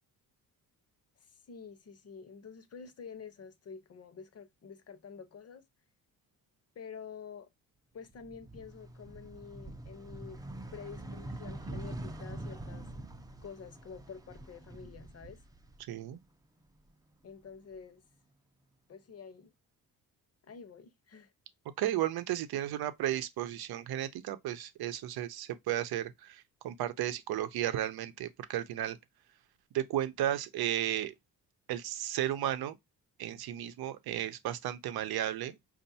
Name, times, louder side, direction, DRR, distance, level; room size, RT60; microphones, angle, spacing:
voice 1, 1.2-5.6 6.8-7.5 7.9-10.4 10.7-12.9 13.4-15.4 17.2-18.0 18.9-19.5 20.4-21.3, left 6 dB, 40° left, 0.8 m, -48 dB
sound 1, 8.1-16.2 16.6-17.8, right 1 dB, 10° right, 0.5 m, -45 dB
voice 2, 15.9-16.2 21.8-29.0 29.7-31.1 31.7-32.7 33.2-35.6, right 12 dB, 85° right, 0.7 m, -34 dB
5.4 x 2.5 x 2.7 m
cardioid pair, 115°, 36 cm